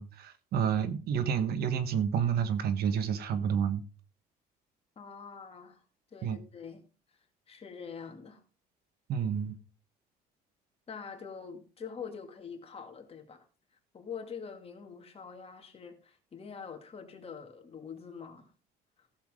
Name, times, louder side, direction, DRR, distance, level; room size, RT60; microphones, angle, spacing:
voice 1, 0.0-3.8 6.2-6.4 9.1-9.6, right 7 dB, 70° right, 1.4 m, -29 dB
voice 2, 5.0-5.8 6.1-6.8 7.5-8.4 10.9-13.5 13.9-18.5 19.0-19.1, left 6 dB, 35° left, 2.5 m, -45 dB
16.0 x 7.1 x 3.7 m
cardioid pair, 110°, 17 cm